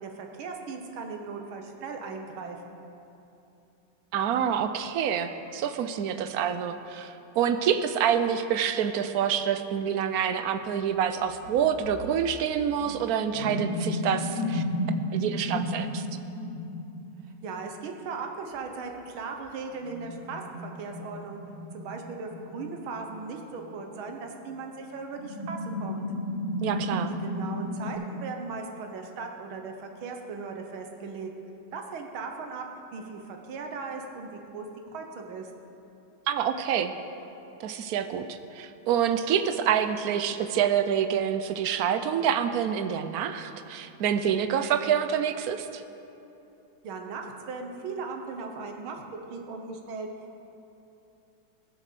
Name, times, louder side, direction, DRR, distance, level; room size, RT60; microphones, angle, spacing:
voice 1, 0.0-2.8 17.4-21.4 21.7-26.0 27.1-31.3 31.7-32.7 32.9-34.7 34.9-35.5 46.8-49.0 49.3-50.4, right 4 dB, 85° right, 3 dB, 1.9 m, -38 dB
voice 2, 4.1-14.6 15.1-16.1 26.6-27.1 36.3-36.9 37.6-45.8, right 8 dB, 65° right, 9 dB, 0.9 m, -27 dB
sound 1, 10.9-11.0 11.4-17.0 17.5-17.6 19.8-24.0 24.5-24.6 25.1-27.9, left 1 dB, 65° left, 3.8 m, -33 dB
20.0 x 7.3 x 6.8 m, 2.9 s
omnidirectional pair, 2.2 m